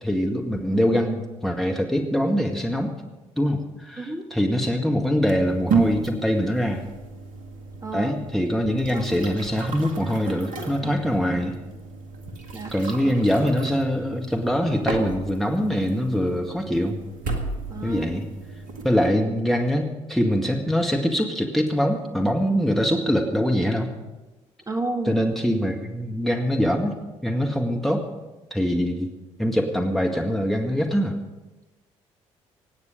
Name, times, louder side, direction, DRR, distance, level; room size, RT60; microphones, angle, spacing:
voice 1, 0.0-2.9 3.4-6.8 7.9-11.5 12.7-17.0 17.8-18.3 18.8-23.9 25.1-26.9 27.2-28.2 28.5-29.1 29.4-31.2, equal, ahead, 2 dB, 1.9 m, -23 dB
sound 1, 5.2-19.0, right 4 dB, 60° right, 1.9 m, -33 dB
voice 2, 7.8-8.1 8.9-9.0 10.8-10.9 12.5-12.7 17.7-18.1 24.7-25.2, right 2 dB, 20° right, 4 dB, 2.2 m, -30 dB
25.0 x 9.5 x 5.3 m, 1.1 s
figure-of-eight pair, 45°, 15 cm